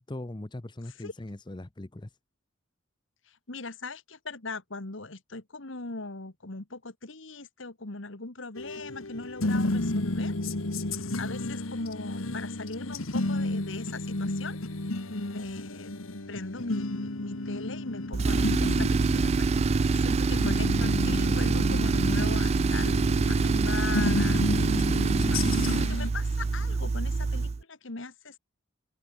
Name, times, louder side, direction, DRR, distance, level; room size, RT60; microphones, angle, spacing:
voice 1, 0.0-2.1, left 1 dB, 20° left, 0.7 m, -40 dB
voice 2, 3.5-10.3 10.9-14.6 15.1-22.9 23.2-24.8 25.3-28.4, left 3 dB, 65° left, 1.9 m, -39 dB
sound 1, 8.6-26.1, left 2 dB, 85° left, 1.9 m, -32 dB
Tools, 18.1-27.6, right 4 dB, 30° right, 0.3 m, -25 dB
open air
head